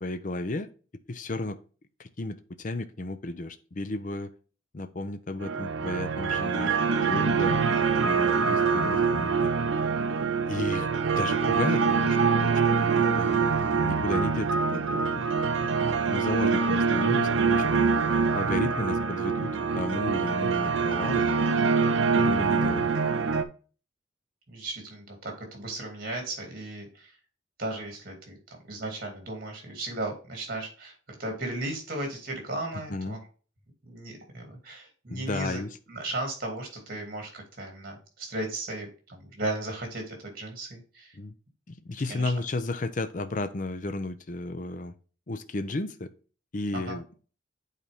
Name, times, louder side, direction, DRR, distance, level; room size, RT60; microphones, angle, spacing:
voice 1, 0.0-0.7 1.1-1.6 2.0-4.3 4.7-7.6 8.0-9.5 10.5-10.9 11.1-13.5 13.8-15.2 15.6-15.7 16.1-17.9 18.3-21.3 22.1-22.9 32.7-33.2 35.1-35.8 41.1-41.3 41.7-44.9 45.3-46.1 46.5-47.0, left 2 dB, 40° left, 11 dB, 0.6 m, -33 dB
sound 1, 5.4-23.4, right 5 dB, 85° right, 0.6 m, -25 dB
voice 2, 22.0-22.3 24.5-27.1 27.6-30.9 31.2-33.2 33.9-35.6 35.9-41.2 42.1-42.3 46.7-47.0, right 2 dB, 50° right, 2 dB, 2.4 m, -36 dB
8.7 x 4.1 x 3.4 m, 0.37 s
head